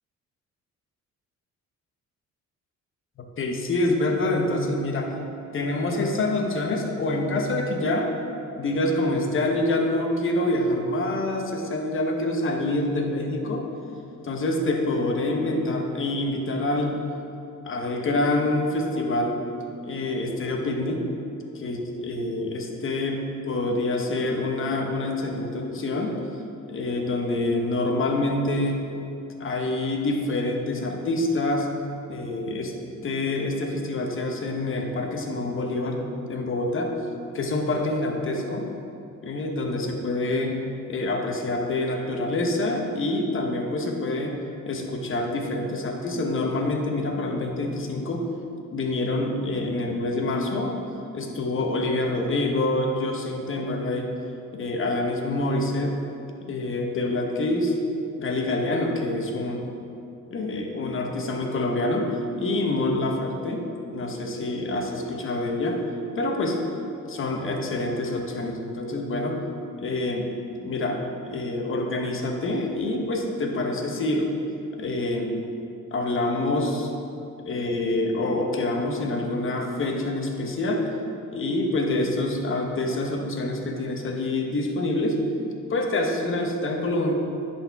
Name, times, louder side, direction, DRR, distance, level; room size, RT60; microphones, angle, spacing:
voice 1, 3.2-5.2 5.5-8.1 8.6-13.6 14.2-17.0 17.6-19.5 19.8-21.0 21.5-23.2 23.5-26.2 26.7-28.9 29.4-31.7 32.1-32.7 33.0-36.9 37.3-38.7 39.2-40.6 40.9-44.4 44.7-48.3 48.7-50.9 51.1-54.1 54.5-56.0 56.5-57.8 58.2-59.6 60.3-65.8 66.2-66.6 67.0-69.4 69.8-74.3 74.8-75.4 75.9-76.9 77.4-80.9 81.3-85.2 85.7-87.1, left 2 dB, 45° left, 2 dB, 1.0 m, -26 dB
10.5 x 4.3 x 3.5 m, 2.7 s
cardioid pair, 90°, 30 cm